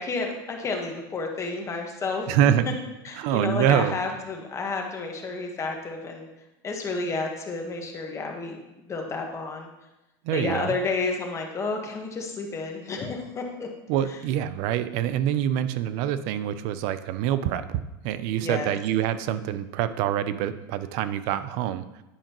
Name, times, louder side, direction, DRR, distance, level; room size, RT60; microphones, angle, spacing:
voice 1, 0.0-2.3 3.0-6.3 6.6-8.6 8.9-9.7 10.3-13.7 18.4-18.7, left 3 dB, 25° left, 2 dB, 1.3 m, -31 dB
voice 2, 2.3-2.8 3.2-3.9 10.2-10.8 13.9-21.8, right 10 dB, 60° right, 13 dB, 0.5 m, -25 dB
10.0 x 5.0 x 3.0 m, 0.96 s
supercardioid pair, 125°, 12 cm